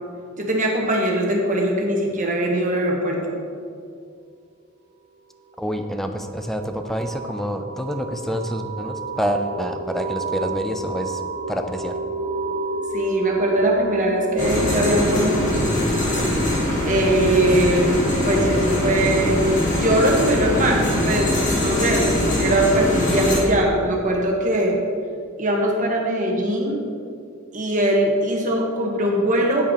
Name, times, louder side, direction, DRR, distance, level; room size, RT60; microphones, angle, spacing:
voice 1, 0.4-3.4 12.9-15.5 16.8-19.4 19.7-24.8 25.4-26.8 27.5-29.7, right 1 dB, 40° right, -1 dB, 1.3 m, -21 dB
voice 2, 5.6-11.2 11.5-12.0, equal, ahead, 6 dB, 0.4 m, -27 dB
sound 1, 5.7-20.1, right 2 dB, 55° right, 1.8 m, -31 dB
sound 2, 14.4-23.4, left 1 dB, 40° left, 1.5 m, -22 dB
9.0 x 8.3 x 2.9 m, 2.3 s
head